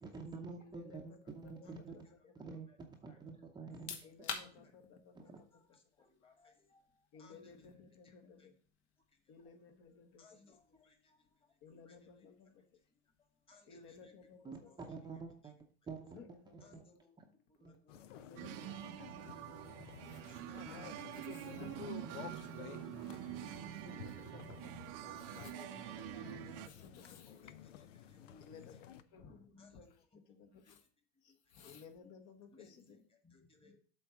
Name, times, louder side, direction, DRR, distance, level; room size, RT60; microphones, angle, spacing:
voice 1, 0.0-2.1 2.4-4.5 5.1-5.4 14.4-16.2 16.5-16.8 17.2-17.3 17.6-17.8 18.7-18.8 21.8-22.8 23.6-23.8, right 4 dB, 10° right, 1 dB, 0.7 m, -49 dB
voice 2, 0.6-2.2 4.0-5.6 7.1-8.5 9.3-10.4 11.6-12.6 13.7-14.7 16.0-17.0 18.1-18.8 20.0-20.4 21.1-22.4 23.1-23.2 23.9-25.5 25.9-27.3 28.4-29.9 30.1-30.8 31.2-33.0, left 5 dB, 45° left, 6 dB, 1.1 m, -58 dB
sound 1, 3.6-16.3, left 6 dB, 70° left, 1.6 m, -54 dB
voice 3, 5.2-6.8 7.2-7.7 8.0-8.1 8.4-8.5 9.9-11.2 11.7-11.9 12.2-12.3 13.5-14.1 14.4-14.8 16.6-17.1 17.6-18.9 19.2-19.8 20.3-21.4 22.0-23.4 24.0-24.1 24.9-26.7 26.9-27.5 27.8-28.8 29.1-29.9 32.5-33.8, left 4 dB, 15° left, 5 dB, 1.4 m, -63 dB
sound 2, 17.9-29.0, left 10 dB, 90° left, 0.7 m, -52 dB
sound 3, 18.4-26.7, right 15 dB, 50° right, 0.6 m, -46 dB
7.9 x 3.8 x 5.9 m, 0.43 s
supercardioid pair, 130°, 36 cm